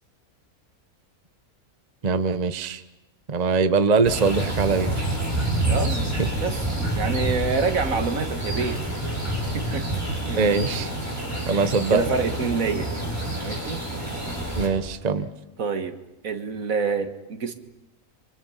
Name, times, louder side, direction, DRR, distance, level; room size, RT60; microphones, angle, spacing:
voice 1, 2.0-2.8 3.3-4.9 6.2-6.3 9.7-9.8 10.4-10.9 11.5-12.0 14.6-15.3, right 4 dB, 35° right, 10 dB, 0.8 m, -22 dB
sound 1, 4.0-14.7, right 1 dB, 10° right, 6.0 m, -28 dB
voice 2, 5.7-6.6 6.9-8.8 9.5-10.4 11.4-12.9 13.4-13.8 15.6-16.0 16.2-17.5, right 5 dB, 65° right, 8 dB, 1.9 m, -27 dB
29.5 x 24.5 x 5.7 m, 0.97 s
omnidirectional pair, 1.6 m